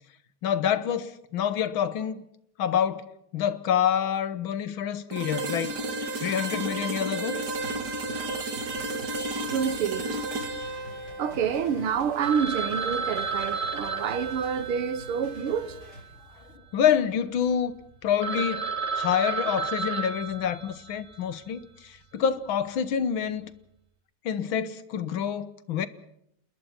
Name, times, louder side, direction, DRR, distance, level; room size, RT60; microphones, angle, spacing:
voice 1, 0.4-2.2 2.6-5.7 6.2-7.4 16.7-17.7 18.0-18.7 18.9-23.5 24.3-25.9, left 8 dB, 70° left, 1.8 m, -27 dB
sound 1, 5.1-12.9, right 2 dB, 50° right, 2.5 m, -33 dB
sound 2, 7.3-16.0, left 1 dB, 50° left, 7.7 m, -47 dB
voice 2, 9.5-10.2 11.2-15.8, right 7 dB, 85° right, 2.2 m, -28 dB
Telephone, 12.2-16.6 16.8-16.9 17.5-17.6 17.9-18.0 18.2-21.2, right 5 dB, 25° right, 1.3 m, -32 dB
28.5 x 20.5 x 5.9 m
omnidirectional pair, 2.3 m